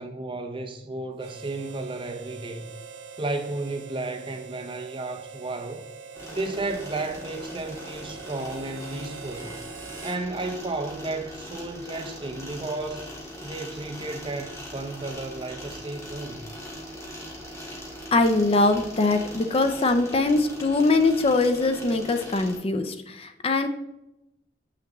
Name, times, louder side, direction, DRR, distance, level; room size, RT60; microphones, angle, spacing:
voice 1, 0.0-2.7 3.2-5.8 6.3-9.6 10.0-13.1 13.4-16.4, right 2 dB, 30° right, 0.6 m, -33 dB
Harmonica, 1.2-10.3, right 5 dB, 85° right, 0.6 m, -43 dB
sound 1, 6.1-22.6, equal, 15° left, 1.5 m, -40 dB
voice 2, 18.1-23.7, left 3 dB, 30° left, 0.4 m, -22 dB
7.7 x 5.8 x 3.0 m
head